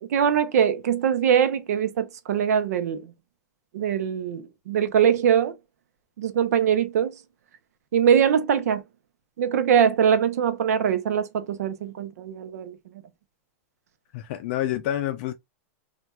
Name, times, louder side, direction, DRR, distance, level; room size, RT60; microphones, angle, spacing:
voice 1, 0.0-3.1 3.7-5.5 6.2-7.1 7.9-8.8 9.4-12.8, right 8 dB, 80° right, 0.7 m, -22 dB
voice 2, 14.1-15.3, left 12 dB, 45° left, 0.4 m, -28 dB
4.2 x 2.4 x 2.3 m
supercardioid pair, 170°, 8 cm